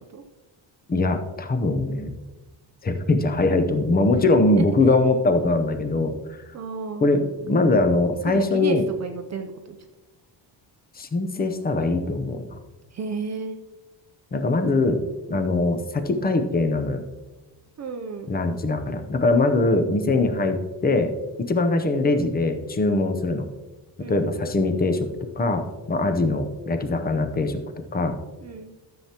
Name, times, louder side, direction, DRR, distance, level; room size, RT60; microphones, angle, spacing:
voice 1, 0.9-2.1 2.8-6.4 7.0-8.9 11.0-12.6 14.3-15.0 15.3-17.0 18.3-21.1 21.4-23.5 24.1-25.1 25.4-27.6 27.9-28.2, left 2 dB, 20° left, 8 dB, 0.6 m, -22 dB
voice 2, 6.5-7.1 8.3-9.8 12.9-13.6 17.8-18.3 24.0-24.4 28.4-28.7, right 5 dB, 35° right, 5 dB, 0.6 m, -33 dB
13.5 x 7.5 x 2.9 m, 1.1 s
cardioid pair, 175°, 46 cm